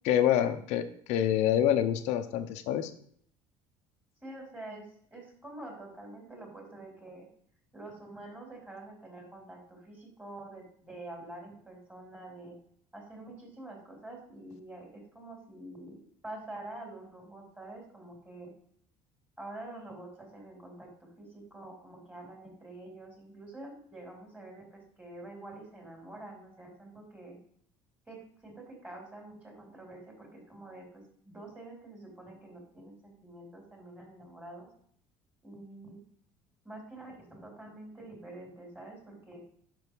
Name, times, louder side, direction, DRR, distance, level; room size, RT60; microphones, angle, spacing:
voice 1, 0.0-2.9, left 10 dB, 70° left, 10 dB, 0.6 m, -27 dB
voice 2, 4.2-7.3 7.7-12.5 12.9-18.5 19.4-27.4 28.1-34.7 35.4-36.0 36.6-39.4, right 2 dB, 15° right, 0 dB, 3.1 m, -47 dB
5.5 x 5.2 x 4.5 m, 0.62 s
supercardioid pair, 85°, 12 cm